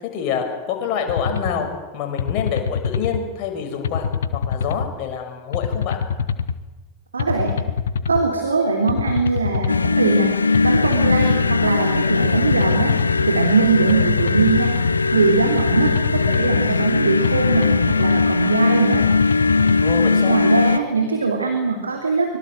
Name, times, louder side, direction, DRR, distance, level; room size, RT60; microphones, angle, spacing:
voice 1, 0.0-1.7 1.9-4.0 4.3-6.0 19.8-20.4, left 7 dB, 40° left, 3 dB, 6.3 m, -26 dB
sound 1, 1.1-1.5 2.2-3.2 3.8-4.9 5.5-6.6 7.2-8.2 8.9-9.9 10.5-11.6 12.2-13.3 13.9-14.9 15.6-16.6 17.2-18.3 18.9-20.0, left 7 dB, 65° left, 1.2 m, -24 dB
voice 2, 7.1-7.6 8.1-10.3 10.6-14.7 15.1-19.0 20.3-22.4, right 4 dB, 75° right, 3 dB, 3.4 m, -21 dB
sound 2, 9.7-20.8, left 4 dB, 80° left, 0.9 m, -19 dB
25.0 x 23.0 x 7.8 m, 1.2 s
figure-of-eight pair, 90°, 0 cm